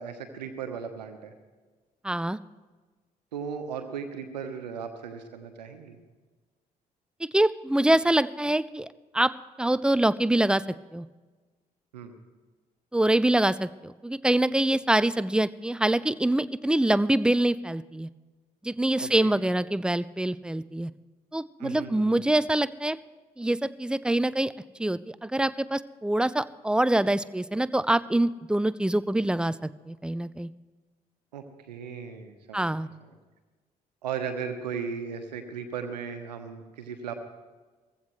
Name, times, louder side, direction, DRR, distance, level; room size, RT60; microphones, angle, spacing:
voice 1, 0.0-1.3 3.3-6.0 11.9-12.1 19.0-19.3 21.6-22.2 31.3-32.7 33.0-33.1 34.0-37.1, right 6 dB, 85° right, 8 dB, 1.1 m, -36 dB
voice 2, 2.0-2.4 7.2-8.9 9.1-9.3 9.6-10.6 10.9-11.1 12.9-18.1 18.6-20.9 21.3-23.0 23.4-24.5 24.8-30.5 32.5-32.9, right 1 dB, 5° right, 16 dB, 0.5 m, -25 dB
20.0 x 15.5 x 3.2 m, 1.3 s
figure-of-eight pair, 45°, 21 cm